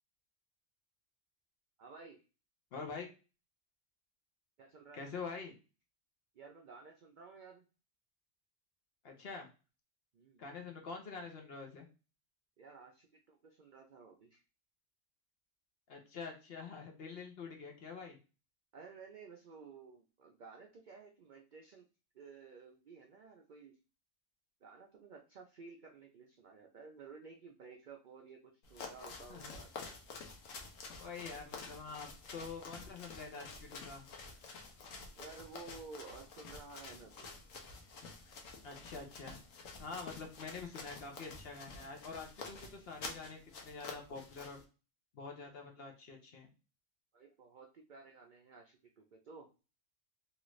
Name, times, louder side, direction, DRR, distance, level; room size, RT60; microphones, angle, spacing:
voice 1, 1.8-2.2 4.6-5.0 6.3-7.7 10.1-10.4 12.6-14.4 18.7-21.9 22.1-23.8 24.6-29.9 35.2-37.3 47.1-49.5, right 4 dB, 65° right, 2 dB, 0.4 m, -54 dB
voice 2, 2.7-3.1 4.9-5.6 9.0-9.5 10.4-11.9 15.9-18.2 29.3-29.6 31.0-34.1 38.6-39.4 39.8-44.6 45.1-46.5, left 4 dB, 55° left, 2 dB, 0.8 m, -46 dB
sound 1, 28.6-44.6, left 4 dB, 80° left, 1.1 m, -49 dB
3.0 x 2.4 x 3.0 m, 0.32 s
omnidirectional pair, 1.4 m